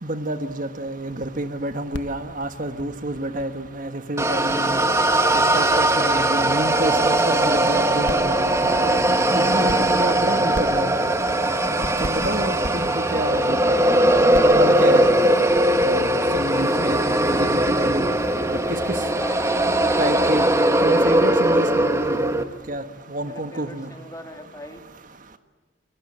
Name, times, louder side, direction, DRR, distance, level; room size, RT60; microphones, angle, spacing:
voice 1, 0.0-4.8 5.5-9.0 9.4-10.9 12.0-13.6 14.4-15.1 15.8-16.1 16.3-18.0 18.7-18.8 20.0-20.4 20.8-22.4 22.7-22.8 23.1-23.9, right 1 dB, 45° right, 8 dB, 1.5 m, -28 dB
sound 1, 0.9-3.8 4.1-4.2 4.4-5.7 5.9-6.0 6.3-6.6 7.0-7.1 7.3-7.6 7.9-8.7 9.5-10.2 10.5-13.3 13.7-13.9 14.3-17.2, left 1 dB, 65° left, 1.5 m, -35 dB
sound 2, 4.2-22.4, right 1 dB, 15° right, 1.7 m, -20 dB
voice 2, 12.3-12.6 19.2-19.7 23.2-24.8, left 1 dB, 20° left, 4 dB, 3.3 m, -42 dB
29.0 x 22.5 x 8.7 m, 1.4 s
head